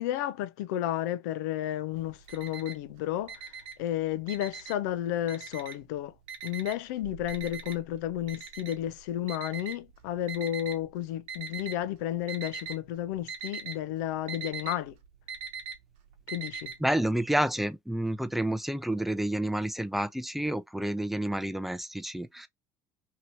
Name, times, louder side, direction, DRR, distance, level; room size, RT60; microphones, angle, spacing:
voice 1, 0.0-6.1 6.4-14.9 16.3-16.7, left 12 dB, 80° left, 0.5 m, -32 dB
Alarm, 1.9-2.9 3.2-4.9 5.3-5.9 6.3-10.8 11.3-11.9 12.2-12.8 13.1-16.8, right 6 dB, 75° right, 0.9 m, -40 dB
voice 2, 16.8-22.5, right 1 dB, ahead, 0.5 m, -29 dB
2.9 x 2.8 x 2.8 m
supercardioid pair, 80°, 9 cm